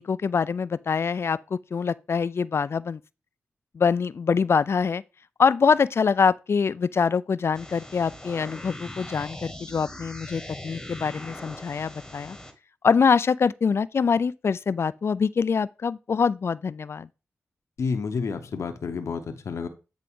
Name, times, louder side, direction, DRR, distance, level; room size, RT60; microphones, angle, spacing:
voice 1, 0.0-3.0 3.7-5.0 5.4-12.4 12.8-17.1, left 5 dB, 55° left, 0.4 m, -24 dB
sound 1, 7.5-12.5, left 1 dB, 10° left, 1.4 m, -40 dB
voice 2, 17.8-19.7, left 5 dB, 70° left, 0.8 m, -30 dB
8.4 x 3.7 x 3.6 m
cardioid pair, 45°, 5 cm